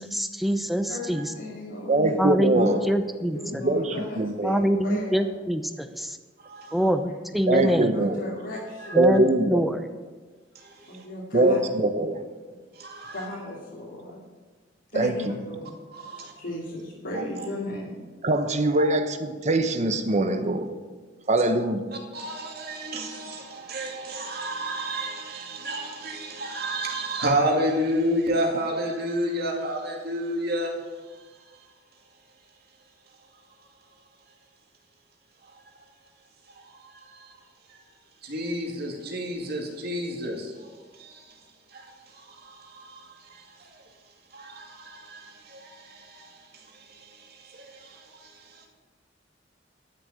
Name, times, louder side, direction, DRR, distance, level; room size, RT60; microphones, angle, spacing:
voice 1, 0.0-1.3 2.2-3.6 4.4-6.2 6.7-7.9 8.9-9.8, equal, ahead, 0.7 m, -25 dB
voice 2, 0.9-2.1 2.5-2.7 3.3-5.3 7.6-9.2 10.9-11.6 13.1-14.2 14.9-15.9 16.4-18.0, left 1 dB, 90° left, 2.7 m, -36 dB
voice 3, 1.9-2.8 3.5-4.5 7.5-8.2 9.0-9.7 11.3-12.2 14.9-15.2 18.2-20.7 21.3-21.9, right 2 dB, 40° right, 0.9 m, -23 dB
voice 4, 6.4-6.9 8.8-9.0 10.6-11.1 12.7-13.3 15.9-16.3 17.4-17.5 18.8-18.9 21.9-30.8 36.5-37.4 37.7-37.8 38.2-41.4 41.7-43.8 44.3-48.7, right 1 dB, 55° right, 2.4 m, -31 dB
12.0 x 6.5 x 8.6 m
head